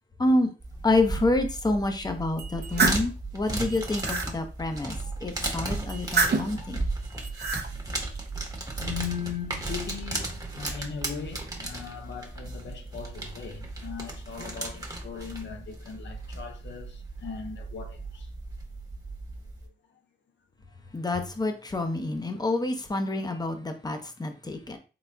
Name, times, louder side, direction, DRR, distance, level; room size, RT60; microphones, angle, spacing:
voice 1, 0.2-0.5 0.8-6.8 20.9-24.8, left 2 dB, 20° left, 0.7 m, -28 dB
sound 1, 0.6-19.7, right 2 dB, 20° right, 1.0 m, -35 dB
sound 2, 2.4-3.1 3.7-4.3 5.9-6.6 7.2-7.7, right 4 dB, 65° right, 0.6 m, -27 dB
voice 2, 8.8-18.3, left 7 dB, 85° left, 0.5 m, -38 dB
3.9 x 3.4 x 2.2 m
cardioid pair, 65°, 18 cm